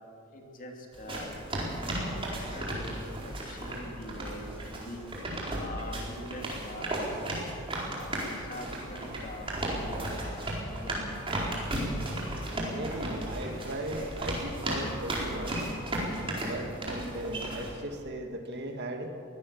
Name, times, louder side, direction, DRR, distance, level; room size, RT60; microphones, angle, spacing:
voice 1, 0.3-1.4 2.1-3.0 3.2-5.0 5.5-7.1 8.0-11.2, left 1 dB, 40° left, 2 dB, 2.8 m, -44 dB
sound 1, 0.9-17.7, right 1 dB, 25° right, 4.5 m, -35 dB
voice 2, 12.7-15.7 16.4-19.1, right 1 dB, 50° right, 4 dB, 2.0 m, -37 dB
23.0 x 17.0 x 7.2 m, 2.5 s
head